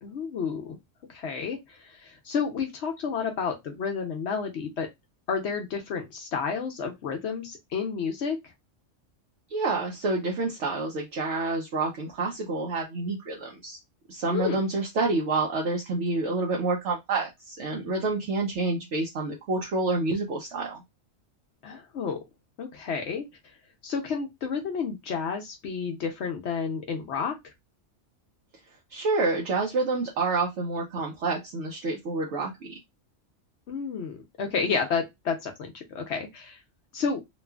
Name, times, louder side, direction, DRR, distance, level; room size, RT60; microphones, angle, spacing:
voice 1, 0.0-0.8 1.1-4.9 5.3-8.4 14.3-14.6 21.6-22.2 22.6-23.3 23.8-27.4 33.7-36.6 36.9-37.2, left 5 dB, 65° left, 0.8 m, -31 dB
voice 2, 9.5-13.8 14.1-20.8 28.9-32.5, right 3 dB, 70° right, 0.9 m, -28 dB
3.0 x 2.4 x 2.2 m
omnidirectional pair, 1.3 m